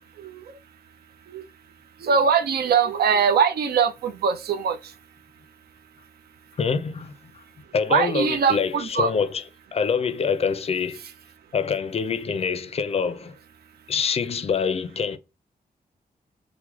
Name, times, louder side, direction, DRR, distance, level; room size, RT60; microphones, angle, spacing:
voice 1, 2.0-4.8 7.9-9.1, right 6 dB, 80° right, 0.4 m, -22 dB
voice 2, 6.6-7.4 7.7-9.4 9.7-11.0 11.5-13.4 13.9-15.2, left 6 dB, 40° left, 0.4 m, -25 dB
3.0 x 2.1 x 3.4 m
cardioid pair, 90°, 16 cm